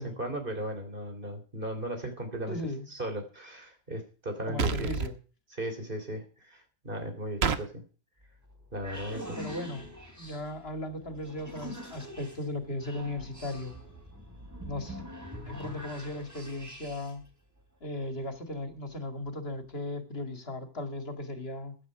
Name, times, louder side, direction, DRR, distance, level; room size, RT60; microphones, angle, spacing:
voice 1, 0.0-2.6 2.9-4.9 5.6-7.8 8.7-9.4, right 1 dB, 55° right, 6 dB, 3.5 m, -36 dB
voice 2, 2.5-2.9 4.5-5.2 9.4-9.9 10.2-13.8 14.6-15.0 15.4-17.2 17.8-21.8, left 1 dB, 70° left, 7 dB, 2.5 m, -37 dB
sound 1, 4.6-5.1 7.4-7.6, right 6 dB, 80° right, 1.3 m, -28 dB
sound 2, 8.2-17.3, equal, 15° right, 3.8 m, -44 dB
16.0 x 11.0 x 4.7 m, 0.38 s
omnidirectional pair, 1.1 m